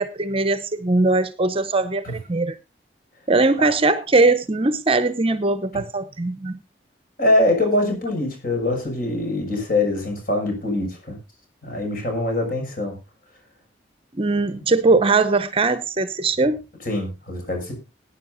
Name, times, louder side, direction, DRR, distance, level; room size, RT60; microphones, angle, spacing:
voice 1, 0.0-2.6 3.3-6.6 14.1-16.6, right 3 dB, 30° right, 0.7 m, -20 dB
voice 2, 7.2-11.2 11.6-13.0 16.8-17.7, left 2 dB, 50° left, 6.5 m, -23 dB
20.0 x 10.0 x 2.6 m
head